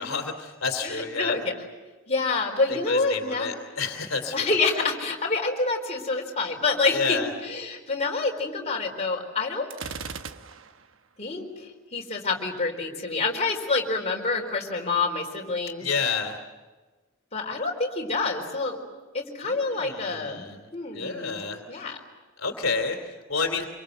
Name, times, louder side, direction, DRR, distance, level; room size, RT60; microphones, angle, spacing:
voice 1, 0.0-1.4 2.7-4.5 6.8-7.3 15.8-16.4 19.4-21.8 22.4-23.7, left 4 dB, 80° left, 4 dB, 2.9 m, -30 dB
voice 2, 0.8-1.4 2.1-3.6 4.3-7.2 7.4-9.7 11.2-15.9 17.3-18.8 19.1-20.4 20.7-21.4 21.7-22.0, left 3 dB, 30° left, 0 dB, 4.2 m, -27 dB
Gunshot gunfire, 9.7-10.9, right 5 dB, 70° right, 1.1 m, -38 dB
26.5 x 24.0 x 7.9 m, 1.3 s
head